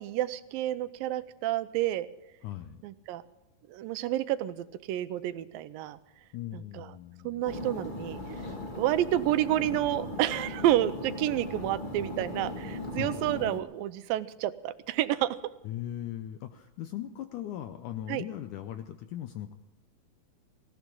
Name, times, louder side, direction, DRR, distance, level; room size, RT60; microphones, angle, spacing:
voice 1, 0.0-2.1 2.8-3.2 3.7-6.0 6.5-6.9 7.2-8.2 8.7-15.4 18.1-18.2, right 13 dB, 85° right, 14 dB, 2.4 m, -29 dB
voice 2, 2.4-2.8 6.3-7.4 13.0-13.2 15.6-19.5, left 12 dB, 75° left, 9 dB, 1.9 m, -39 dB
sound 1, 7.4-13.6, left 1 dB, 30° left, 0.9 m, -38 dB
19.0 x 17.5 x 3.9 m, 1.0 s
omnidirectional pair, 4.1 m